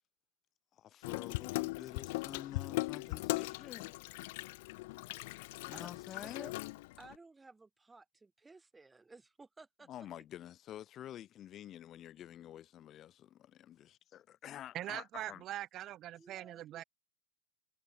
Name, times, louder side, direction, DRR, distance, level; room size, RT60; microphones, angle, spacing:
voice 1, 0.7-3.9 5.7-6.5 9.9-15.4, left 11 dB, 35° left, 1.3 m, -49 dB
Water tap faucet / Sink (filling or washing), 1.0-7.2, left 22 dB, 60° left, 0.4 m, -39 dB
voice 2, 5.7-6.6 7.0-10.2 16.1-16.8, right 3 dB, 10° right, 1.8 m, -57 dB
voice 3, 14.7-16.8, right 13 dB, 35° right, 0.9 m, -42 dB
hypercardioid pair, 120°, 0 cm